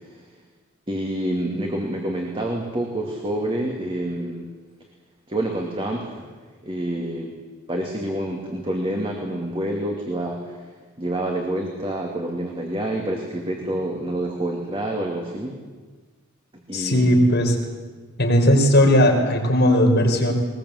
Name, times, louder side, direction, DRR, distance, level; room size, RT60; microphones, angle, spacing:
voice 1, 0.9-4.5 5.3-6.3 6.6-7.3 7.7-10.6 11.0-15.6 16.7-17.2, right 1 dB, 25° right, 0 dB, 2.6 m, -27 dB
voice 2, 16.7-17.5 18.2-20.3, equal, 50° left, 1 dB, 4.5 m, -17 dB
21.5 x 20.5 x 8.1 m, 1.4 s
head